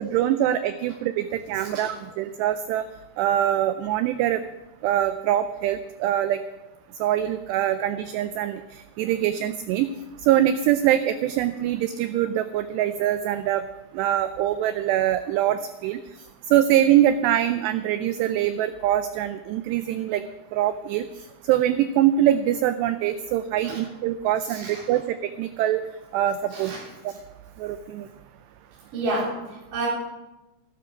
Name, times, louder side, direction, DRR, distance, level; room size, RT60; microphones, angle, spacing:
voice 1, 0.0-2.9 3.2-4.4 4.8-6.4 7.0-9.9 10.2-13.6 13.9-16.0 16.5-20.2 20.5-25.8 26.1-26.7 27.0-27.1 27.6-28.1, right 11 dB, 90° right, 11 dB, 2.4 m, -23 dB
voice 2, 1.5-1.9 23.6-23.9 24.5-24.8 26.5-26.9 28.9-29.9, right 2 dB, 45° right, -8 dB, 5.0 m, -31 dB
16.5 x 12.5 x 5.1 m, 1.1 s
omnidirectional pair, 5.5 m